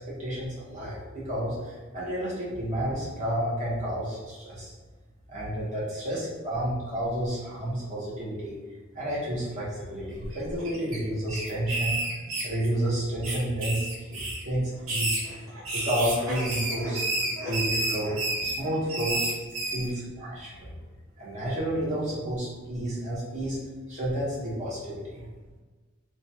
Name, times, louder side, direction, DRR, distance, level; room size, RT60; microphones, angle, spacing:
voice 1, 0.0-4.7 5.3-8.6 8.9-12.0 12.4-15.4 15.7-17.0 17.4-18.1 18.4-19.3 19.7-20.7 21.2-23.6 23.9-25.2, right 1 dB, 35° right, -7 dB, 1.0 m, -31 dB
sound 1, 10.2-11.0 11.3-12.9 13.2-14.4 14.8-19.8, right 2 dB, 80° right, 0.9 m, -30 dB
2.9 x 2.2 x 2.8 m, 1.3 s
head